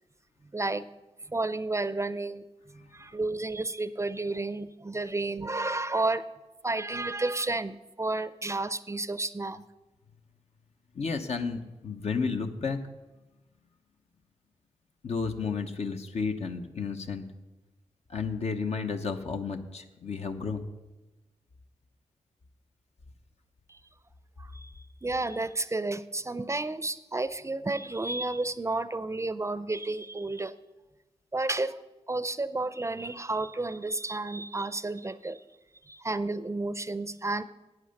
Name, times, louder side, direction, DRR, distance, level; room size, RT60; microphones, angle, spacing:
voice 1, 0.5-0.9 1.3-2.4 2.9-6.2 6.6-9.6 23.7-23.8 24.4-24.7 25.0-30.5 31.3-31.8 32.1-35.4 35.9-37.4, right 2 dB, 25° right, 14 dB, 0.5 m, -31 dB
voice 2, 10.9-12.8 15.0-17.3 18.1-20.6, left 5 dB, 65° left, 5 dB, 0.9 m, -32 dB
11.0 x 8.7 x 6.5 m, 1.1 s
cardioid pair, 70°, 12 cm